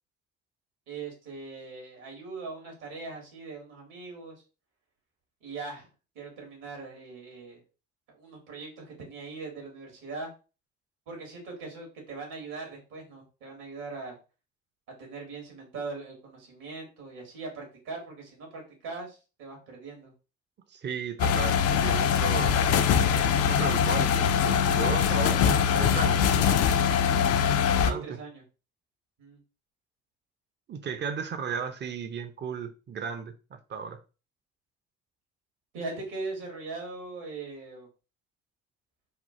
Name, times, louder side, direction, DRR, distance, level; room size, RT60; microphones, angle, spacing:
voice 1, 0.9-4.3 5.4-5.9 6.1-7.6 8.1-10.3 11.1-14.2 15.0-20.1 27.8-28.4 29.2-29.4 35.7-37.9, right 3 dB, 65° right, 0 dB, 1.6 m, -40 dB
voice 2, 20.7-22.6 23.5-26.3 27.6-28.2 30.7-34.0, right 6 dB, 30° right, 8 dB, 0.6 m, -35 dB
sound 1, 21.2-27.9, left 7 dB, 45° left, 0.4 m, -23 dB
3.6 x 2.3 x 2.7 m, 0.33 s
figure-of-eight pair, 45°, 35 cm